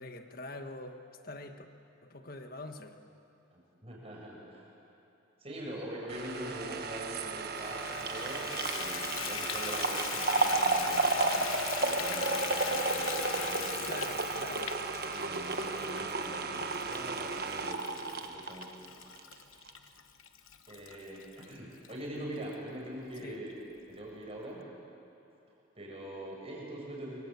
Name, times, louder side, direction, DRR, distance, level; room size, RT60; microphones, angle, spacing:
voice 1, 0.0-1.7 2.0-3.0 13.9-14.7 23.2-23.4, left 2 dB, 45° left, 6 dB, 1.5 m, -44 dB
voice 2, 3.5-4.7 5.4-14.0 15.0-18.7 19.3-19.4 20.7-23.6 23.9-24.6 25.8-27.2, right 1 dB, 30° right, -2 dB, 6.2 m, -43 dB
sound 1, 6.1-19.3 19.7-19.8, right 3 dB, 50° right, 1.2 m, -33 dB
Water tap faucet / Bathtub (filling or washing), 7.6-21.9 22.5-22.6 23.1-23.2 23.5-23.6, left 9 dB, 85° left, 1.2 m, -41 dB
25.5 x 24.0 x 8.3 m, 2.8 s
head